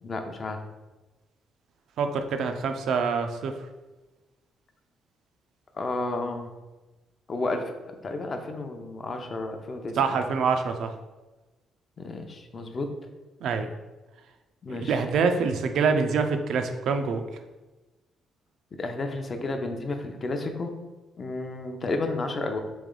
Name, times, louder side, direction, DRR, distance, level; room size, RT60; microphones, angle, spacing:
voice 1, 0.0-0.6 5.7-6.5 7.3-10.2 12.0-12.9 14.6-15.0 18.7-20.7 21.2-22.6, left 2 dB, 40° left, 5 dB, 0.6 m, -32 dB
voice 2, 2.0-3.6 10.0-10.9 13.4-13.7 14.7-17.2, right 5 dB, 75° right, 7 dB, 0.4 m, -25 dB
3.2 x 3.1 x 3.8 m, 1.1 s
cardioid pair, 90°, 0 cm